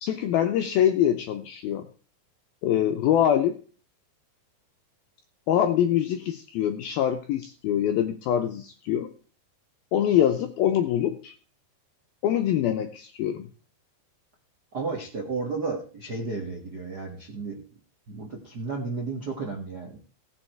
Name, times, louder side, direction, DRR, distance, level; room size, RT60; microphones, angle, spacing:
voice 1, 0.0-1.9 2.6-3.6 5.5-9.1 9.9-11.3 12.2-13.5, left 10 dB, 80° left, 6 dB, 2.2 m, -24 dB
voice 2, 14.7-17.6 18.1-20.0, right 4 dB, 55° right, 0 dB, 1.0 m, -33 dB
17.0 x 7.5 x 4.5 m, 0.41 s
omnidirectional pair, 5.2 m